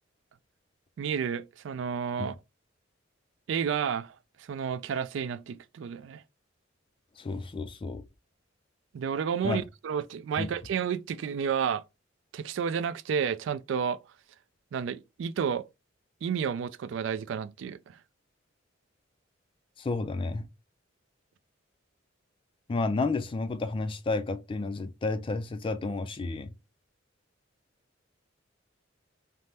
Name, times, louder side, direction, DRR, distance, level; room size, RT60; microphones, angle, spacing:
voice 1, 1.0-2.4 3.5-4.1 4.5-6.2 8.9-11.8 12.3-14.0 14.7-15.7 16.2-18.0, right 7 dB, 65° right, 0.3 m, -31 dB
voice 2, 7.2-8.0 9.4-9.6 10.4-10.5 19.8-20.5 22.7-26.5, left 3 dB, 25° left, 0.3 m, -31 dB
3.4 x 2.0 x 2.7 m
head